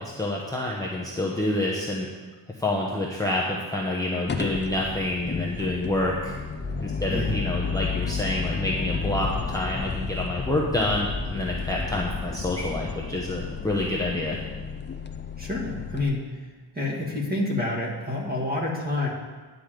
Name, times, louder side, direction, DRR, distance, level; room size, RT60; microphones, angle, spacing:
voice 1, 0.0-2.1 2.6-6.3 6.8-14.4, left 1 dB, 10° left, -4 dB, 0.8 m, -28 dB
sound 1, 4.3-16.0, left 5 dB, 25° left, 0.4 m, -32 dB
voice 2, 7.1-7.4 15.4-16.3 16.7-19.1, left 2 dB, 20° right, -3 dB, 1.8 m, -28 dB
10.0 x 5.1 x 7.5 m, 1.3 s
wide cardioid pair, 180°, 45 cm